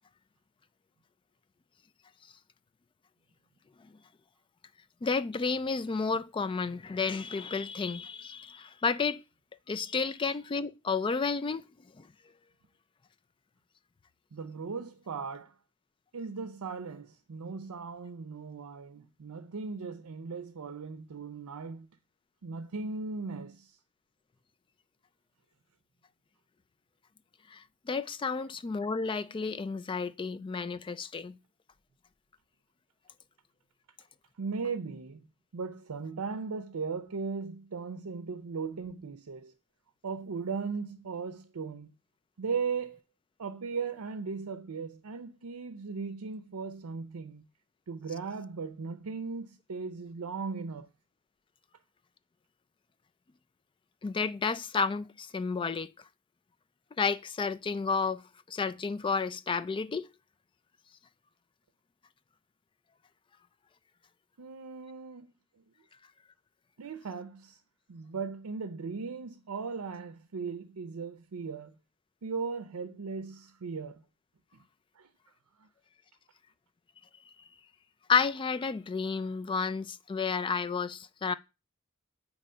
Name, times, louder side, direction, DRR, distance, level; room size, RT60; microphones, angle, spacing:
voice 1, 5.0-9.2 9.7-11.6 27.5-31.4 54.0-55.9 57.0-58.2 58.5-60.1 78.1-81.3, left 5 dB, 20° left, 0.3 m, -31 dB
voice 2, 14.3-15.6 16.1-21.9 22.4-23.8 34.4-35.3 35.5-39.5 40.0-41.9 42.4-43.0 43.4-47.5 47.9-50.9 64.4-65.3 66.8-67.6 67.9-71.7 72.2-74.0 74.5-74.6 75.0-75.1 75.6-75.7, right 5 dB, 85° right, 0.6 m, -37 dB
7.6 x 3.0 x 5.4 m
head